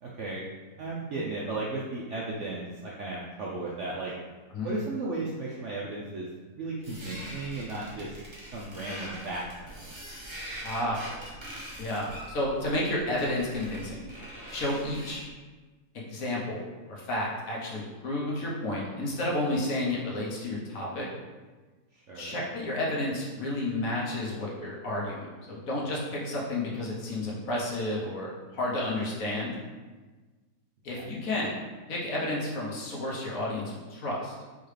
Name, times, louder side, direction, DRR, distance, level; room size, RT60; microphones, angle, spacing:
voice 1, 0.0-0.4 0.8-4.1 4.6-6.3 6.5-8.2 8.5-9.9 21.9-22.4 30.9-31.1, right 2 dB, 65° right, -5 dB, 0.7 m, -35 dB
sound 1, 6.8-15.3, right 1 dB, 25° right, 0.7 m, -43 dB
voice 2, 10.6-11.0 11.8-14.0 14.5-15.2 15.9-21.1 22.1-29.5 30.8-31.5 31.9-34.3, left 1 dB, 60° left, -3 dB, 1.2 m, -31 dB
4.6 x 3.4 x 3.2 m, 1.3 s
omnidirectional pair, 1.8 m